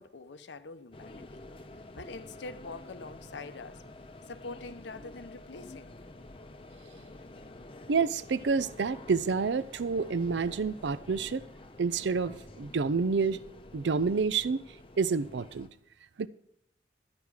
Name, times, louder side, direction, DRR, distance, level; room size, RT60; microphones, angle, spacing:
voice 1, 0.0-1.4 2.0-3.8 4.3-6.0, left 3 dB, 70° left, 0.7 m, -44 dB
sound 1, 0.9-15.7, left 2 dB, 30° left, 0.7 m, -49 dB
voice 2, 7.9-11.4 11.8-13.4 13.7-14.6 15.0-15.7 16.2-16.3, right 5 dB, 70° right, 0.5 m, -28 dB
12.0 x 9.7 x 4.8 m
head